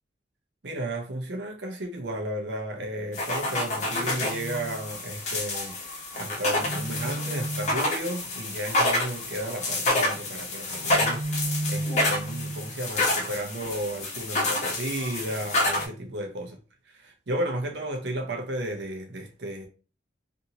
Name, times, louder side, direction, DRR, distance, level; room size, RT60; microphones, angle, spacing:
voice 1, 0.6-16.6 16.9-19.7, right 1 dB, 65° right, 0.6 m, -33 dB
sound 1, 3.1-15.8, left 1 dB, 40° left, 0.8 m, -28 dB
2.7 x 2.6 x 2.8 m
head